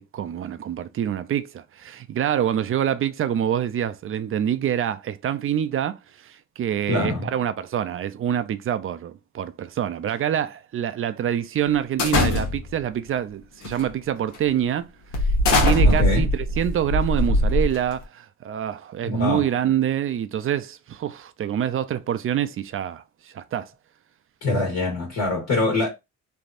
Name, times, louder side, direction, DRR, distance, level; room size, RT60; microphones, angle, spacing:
voice 1, 0.1-14.9 15.2-23.0 23.3-23.7, right 10 dB, 45° right, 0.4 m, -26 dB
voice 2, 6.9-7.3 15.8-16.3 19.0-19.5 24.4-25.9, left 2 dB, 55° left, 1.5 m, -24 dB
sound 1, 12.0-12.8 13.6-13.9 14.3-14.5 15.1-18.0, left 1 dB, 80° left, 1.2 m, -21 dB
3.2 x 2.6 x 2.5 m
cardioid pair, 90°, 30 cm